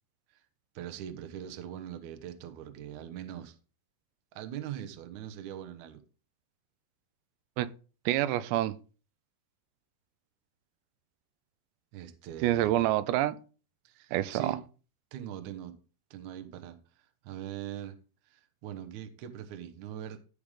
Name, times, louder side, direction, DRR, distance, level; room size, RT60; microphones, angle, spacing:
voice 1, 0.7-3.6 4.3-6.0 11.9-12.9 13.8-14.6 15.1-15.8 16.1-18.0 18.2-20.2, right 10 dB, 70° right, 1.8 m, -42 dB
voice 2, 8.1-8.7 12.4-13.4 14.1-14.6, right 14 dB, 90° right, 2.9 m, -27 dB
15.0 x 5.1 x 3.7 m
omnidirectional pair, 4.9 m